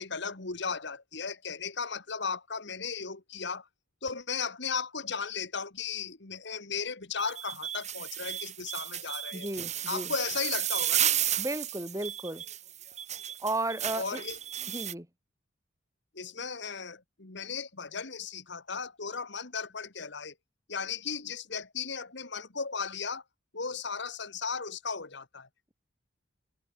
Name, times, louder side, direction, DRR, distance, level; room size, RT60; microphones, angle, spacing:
voice 1, 0.0-3.7 4.0-9.5 9.9-11.1 13.9-14.4 16.1-20.3 20.7-23.2 23.5-25.5, left 5 dB, 60° left, 1.8 m, -36 dB
sound 1, 7.2-14.9, right 10 dB, 35° right, 4.1 m, -33 dB
voice 2, 9.3-10.1 11.4-12.4 13.4-14.2 14.7-15.1, right 2 dB, 15° right, 4.8 m, -34 dB
head